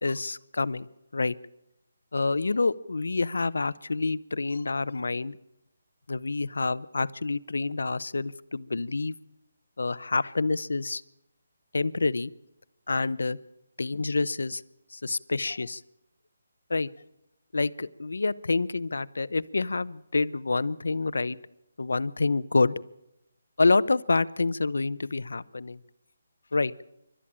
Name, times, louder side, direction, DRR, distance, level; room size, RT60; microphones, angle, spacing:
voice 1, 0.0-0.9 1.1-1.3 2.1-5.4 6.1-9.1 9.8-11.0 11.7-12.3 12.9-13.4 13.8-14.6 14.9-15.8 16.7-16.9 17.5-21.4 21.8-22.7 23.6-25.8 26.5-26.7, left 3 dB, 85° left, 18 dB, 0.7 m, -27 dB
27.0 x 12.5 x 8.7 m, 0.85 s
hypercardioid pair, 165°, 0 cm